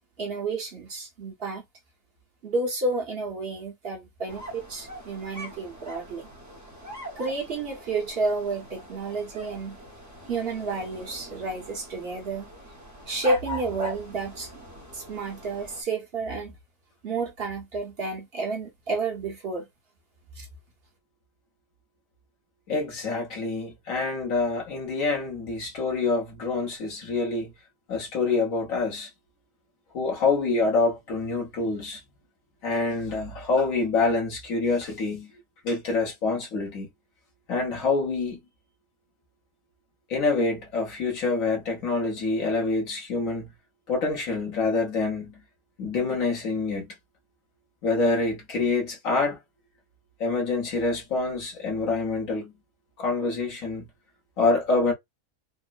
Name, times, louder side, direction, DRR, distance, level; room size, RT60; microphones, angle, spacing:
voice 1, 0.2-1.6 2.4-6.3 7.2-9.8 10.3-12.5 13.1-14.5 14.9-16.6 17.0-19.7 20.3-20.5, right 3 dB, 50° right, 1.1 m, -31 dB
sound 1, 4.3-15.8, right 1 dB, 15° right, 0.7 m, -40 dB
voice 2, 22.7-27.5 27.9-29.1 29.9-32.0 32.6-35.3 35.6-36.9 37.5-38.4 40.1-43.5 43.9-45.4 45.8-46.9 47.8-49.4 50.2-52.5 53.0-53.9 54.4-54.9, left 3 dB, 75° left, 1.5 m, -26 dB
3.7 x 2.0 x 2.3 m
omnidirectional pair, 1.4 m